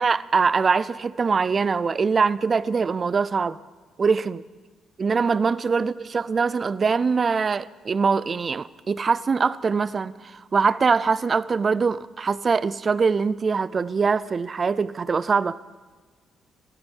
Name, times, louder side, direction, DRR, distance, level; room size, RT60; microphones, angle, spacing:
voice 1, 0.0-3.6 4.0-4.4 5.0-15.6, right 5 dB, 40° right, 0.5 m, -23 dB
20.0 x 15.0 x 4.6 m
cardioid pair, 90°, 0 cm